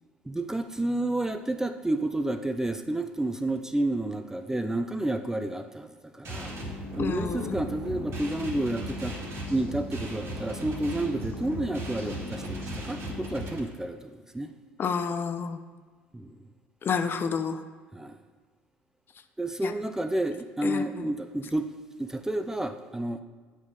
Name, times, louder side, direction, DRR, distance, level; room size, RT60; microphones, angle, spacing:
voice 1, 0.2-6.6 6.9-9.2 9.5-14.5 16.1-16.4 17.9-18.2 19.4-21.7 22.0-23.2, right 1 dB, 10° right, 9 dB, 0.5 m, -30 dB
sound 1, 6.2-13.6, equal, 50° right, 2.0 m, -36 dB
voice 2, 7.0-7.6 14.8-15.6 16.8-17.6 19.6-19.7 20.6-20.8, left 6 dB, 40° left, 9 dB, 0.6 m, -29 dB
8.4 x 5.4 x 4.8 m, 1.5 s
hypercardioid pair, 70°, 5 cm